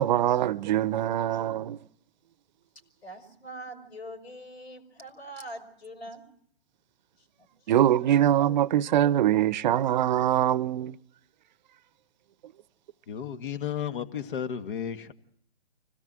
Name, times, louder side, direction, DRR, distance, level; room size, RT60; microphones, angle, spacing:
voice 1, 0.0-1.8 7.7-11.0, right 11 dB, 45° right, 0.8 m, -23 dB
voice 2, 3.0-6.3 7.2-7.7, right 1 dB, 85° left, 5.3 m, -43 dB
voice 3, 13.1-15.1, left 8 dB, 55° left, 1.9 m, -33 dB
25.0 x 17.5 x 7.6 m
hypercardioid pair, 135°, 31 cm